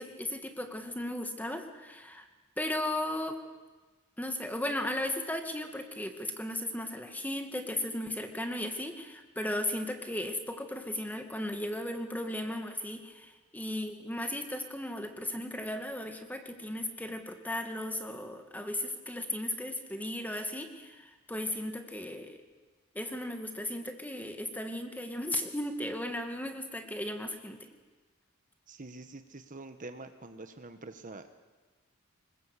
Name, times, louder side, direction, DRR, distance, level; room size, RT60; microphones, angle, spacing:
voice 1, 0.0-2.3 2.6-3.4 4.2-22.4 22.9-27.7, left 1 dB, 10° left, 5 dB, 2.0 m, -36 dB
voice 2, 28.7-31.4, right 2 dB, 35° right, 8 dB, 1.3 m, -46 dB
25.5 x 21.0 x 8.4 m, 1.3 s
head